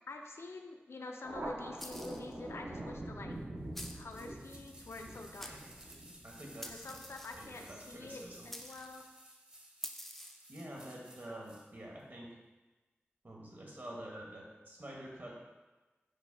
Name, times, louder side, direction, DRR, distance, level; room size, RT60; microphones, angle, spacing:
voice 1, 0.1-3.4 3.9-5.5 6.7-9.0, left 2 dB, 85° left, 3 dB, 0.4 m, -47 dB
Thunder, 1.2-8.3, right 1 dB, 70° right, 0.7 m, -46 dB
sound 1, 1.8-2.3 3.7-4.1 5.0-5.1 5.4-6.0 6.6-7.5 8.5-9.0 9.8-10.5, equal, 5° left, 0.3 m, -47 dB
sound 2, 3.8-11.7 12.0-12.1, right 1 dB, 20° right, 0.7 m, -57 dB
voice 2, 5.4-5.8 6.2-7.0 7.4-8.8 10.5-12.4 13.2-15.3, right 1 dB, 50° right, -2 dB, 1.1 m, -48 dB
4.8 x 2.2 x 4.5 m, 1.2 s
wide cardioid pair, 70°, 4 cm